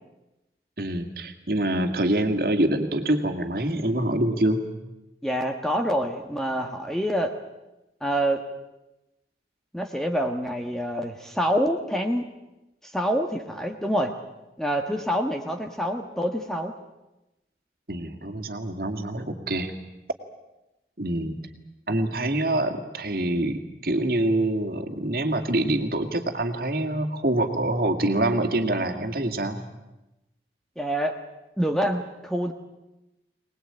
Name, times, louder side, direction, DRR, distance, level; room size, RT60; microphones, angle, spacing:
voice 1, 0.8-4.7 17.9-19.7 21.0-21.4 21.9-29.6, right 1 dB, 55° right, 6 dB, 2.3 m, -25 dB
voice 2, 5.2-7.3 8.0-8.4 9.7-12.2 12.8-14.1 14.6-16.7 30.8-31.2 31.6-32.5, equal, 5° left, 4 dB, 1.4 m, -26 dB
24.0 x 19.5 x 8.9 m, 0.97 s
head